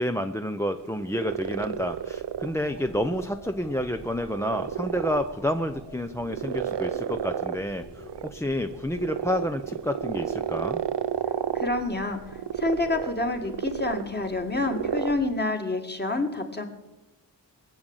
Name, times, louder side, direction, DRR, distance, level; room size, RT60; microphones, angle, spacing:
voice 1, 0.0-10.8, left 1 dB, 5° left, 6 dB, 0.6 m, -29 dB
sound 1, 0.8-15.1, right 9 dB, 70° right, 0.7 m, -33 dB
sound 2, 1.2-15.3, left 2 dB, 90° left, 4.2 m, -48 dB
voice 2, 11.5-12.2 12.6-16.7, left 2 dB, 25° left, 4 dB, 2.0 m, -28 dB
21.0 x 7.6 x 9.0 m, 1.0 s
wide cardioid pair, 130°, 43 cm